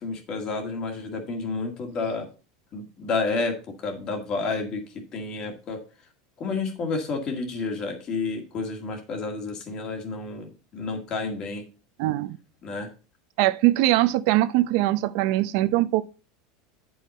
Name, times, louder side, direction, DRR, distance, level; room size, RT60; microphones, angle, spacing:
voice 1, 0.0-2.3 2.7-5.8 6.4-10.5 10.7-11.6 12.6-12.9, left 3 dB, 25° left, 1.8 m, -30 dB
voice 2, 12.0-12.4 13.4-16.0, right 16 dB, 50° right, 0.6 m, -22 dB
10.0 x 5.5 x 4.2 m
supercardioid pair, 175°, 3 cm